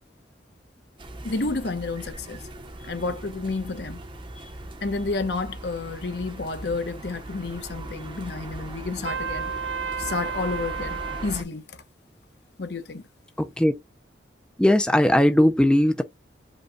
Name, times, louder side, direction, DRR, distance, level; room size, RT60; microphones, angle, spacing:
sound 1, 1.0-11.4, right 1 dB, 30° right, 0.7 m, -39 dB
voice 1, 1.2-2.5 2.9-4.0 4.8-9.5 10.0-11.8 12.6-13.0, left 3 dB, 65° left, 0.8 m, -30 dB
Trumpet, 9.0-11.3, right 6 dB, 75° right, 0.5 m, -32 dB
voice 2, 13.4-13.7 14.6-16.0, left 1 dB, 5° left, 0.4 m, -19 dB
5.2 x 2.2 x 3.8 m
head